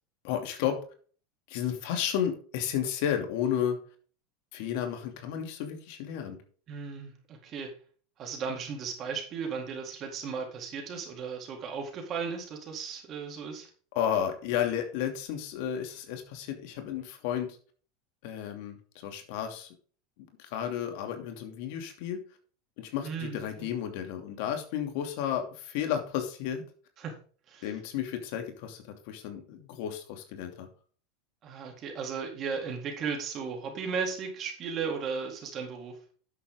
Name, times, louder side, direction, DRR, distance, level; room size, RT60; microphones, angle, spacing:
voice 1, 0.2-0.8 1.5-3.8 4.5-6.4 13.9-17.6 18.2-19.7 20.4-22.2 22.8-26.6 27.6-30.7, left 9 dB, 65° left, 6 dB, 2.7 m, -32 dB
voice 2, 6.7-7.7 8.2-13.7 23.0-23.7 27.0-27.1 27.5-27.7 31.4-36.0, right 5 dB, 35° right, 2 dB, 4.0 m, -36 dB
10.5 x 8.0 x 3.8 m, 0.42 s
supercardioid pair, 130°, 0 cm